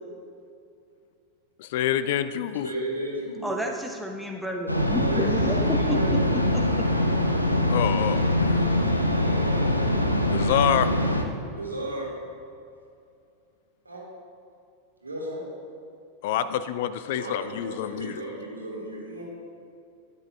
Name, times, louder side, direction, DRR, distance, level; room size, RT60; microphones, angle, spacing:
voice 1, 1.6-2.7 7.7-8.6 10.3-10.9 16.2-18.2, left 10 dB, 50° left, 13 dB, 0.3 m, -27 dB
voice 2, 2.5-3.6 5.0-7.4 9.1-10.0 11.5-12.1 13.8-14.0 15.0-15.4 17.1-19.2, right 1 dB, 80° right, -3 dB, 2.0 m, -35 dB
voice 3, 3.4-5.6 5.9-6.0 6.3-6.6, equal, ahead, 1 dB, 0.8 m, -30 dB
sound 1, 4.7-11.2, left 1 dB, 85° left, 0.6 m, -23 dB
12.5 x 9.8 x 2.3 m, 2.5 s
figure-of-eight pair, 90°, 0 cm